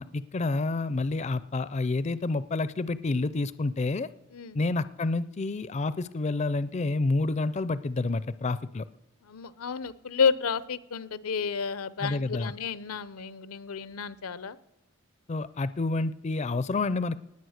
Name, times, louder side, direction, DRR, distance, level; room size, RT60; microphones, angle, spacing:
voice 1, 0.0-4.1 4.5-8.9 12.0-12.5 15.3-17.2, left 3 dB, 30° left, 16 dB, 0.4 m, -29 dB
voice 2, 9.2-14.6, left 6 dB, 90° left, 18 dB, 0.7 m, -31 dB
19.0 x 8.4 x 6.5 m, 0.92 s
head